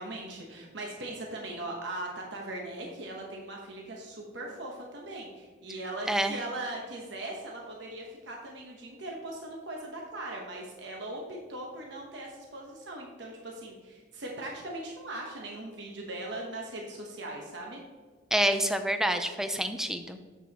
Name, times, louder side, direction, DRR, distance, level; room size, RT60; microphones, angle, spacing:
voice 1, 0.0-17.8, right 1 dB, 65° right, -1 dB, 1.0 m, -39 dB
voice 2, 18.3-20.2, right 1 dB, 5° right, 7 dB, 0.4 m, -27 dB
7.8 x 6.9 x 2.9 m, 1.5 s
head